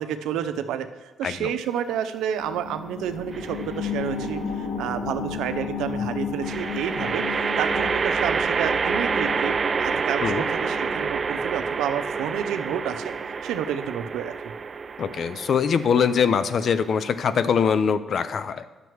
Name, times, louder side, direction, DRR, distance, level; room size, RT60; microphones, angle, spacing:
voice 1, 0.0-7.2 7.6-13.1 13.4-14.3, right 9 dB, 90° right, 10 dB, 0.6 m, -30 dB
sound 1, 2.4-13.5 13.9-14.0, left 5 dB, 85° left, 2.0 m, -34 dB
sound 2, 3.3-3.9 6.4-17.8, right 5 dB, 40° right, 0.3 m, -28 dB
voice 2, 15.0-18.6, left 6 dB, 55° left, 13 dB, 0.6 m, -23 dB
10.0 x 6.7 x 4.6 m, 1.3 s
cardioid pair, 90°, 0 cm